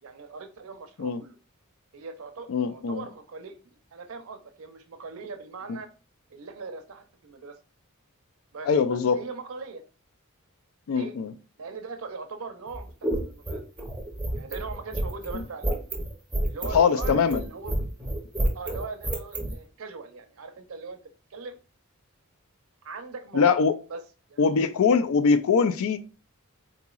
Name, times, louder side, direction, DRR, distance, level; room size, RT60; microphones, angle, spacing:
voice 1, 0.0-1.4 1.9-3.6 3.9-5.9 6.3-7.5 8.5-9.8 10.9-11.1 11.6-13.6 14.3-15.7 16.4-17.8 18.5-21.0 21.3-21.6 22.8-23.6 23.9-24.0 24.3-24.4, right 4 dB, 65° right, 0.5 m, -40 dB
voice 2, 2.5-3.0 8.7-9.2 10.9-11.3 15.3-15.4 16.7-17.4 23.3-23.7 24.4-26.0, left 5 dB, 65° left, 0.3 m, -22 dB
sound 1, 12.7-19.5, right 1 dB, 10° right, 0.6 m, -29 dB
3.7 x 2.9 x 2.3 m
head